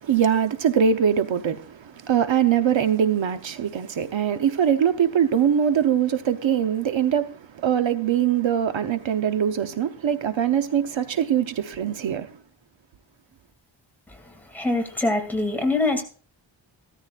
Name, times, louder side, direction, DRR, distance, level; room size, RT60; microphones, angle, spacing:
voice 1, 0.0-12.3, right 8 dB, 80° right, 0.9 m, -22 dB
voice 2, 14.1-16.0, left 2 dB, 5° left, 2.5 m, -25 dB
16.0 x 13.5 x 2.4 m
wide cardioid pair, 140°, 46 cm